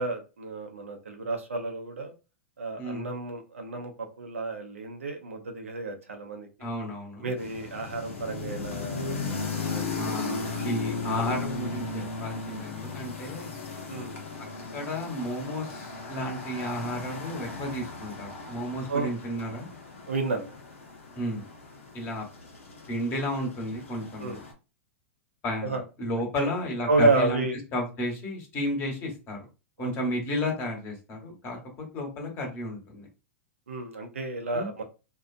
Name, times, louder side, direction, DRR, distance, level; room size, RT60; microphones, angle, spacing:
voice 1, 0.0-2.1 2.6-3.9 4.2-6.7 7.2-9.4 9.6-10.2 10.5-10.8 11.1-11.2 13.9-14.2 18.9-19.1 20.1-20.5 24.2-24.4 25.6-25.8 26.4-26.5 26.9-27.5 29.8-29.9 33.7-34.9, right 3 dB, 90° right, 0.7 m, -30 dB
voice 2, 2.8-3.1 6.6-7.3 9.9-13.6 14.4-14.5 14.7-19.7 21.1-21.5 21.9-22.2 22.9-24.4 25.4-27.4 27.7-29.4 29.8-33.1 34.5-34.7, left 1 dB, 35° left, 1.3 m, -33 dB
sound 1, 7.4-24.5, left 4 dB, 80° left, 0.9 m, -36 dB
2.8 x 2.4 x 2.5 m
hypercardioid pair, 110°, 7 cm